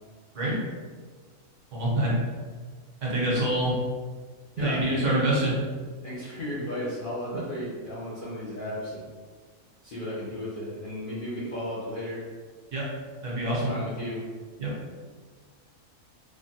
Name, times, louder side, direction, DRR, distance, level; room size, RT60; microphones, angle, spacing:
voice 1, 1.7-2.2 3.0-3.8 4.6-5.5 12.7-12.9 13.2-13.7 14.6-14.7, right 1 dB, 60° right, -5 dB, 1.1 m, -25 dB
voice 2, 4.6-5.0 6.0-9.0 9.8-12.2 13.4-14.2, left 1 dB, 55° left, -9 dB, 0.6 m, -34 dB
3.1 x 2.2 x 2.7 m, 1.5 s
omnidirectional pair, 1.5 m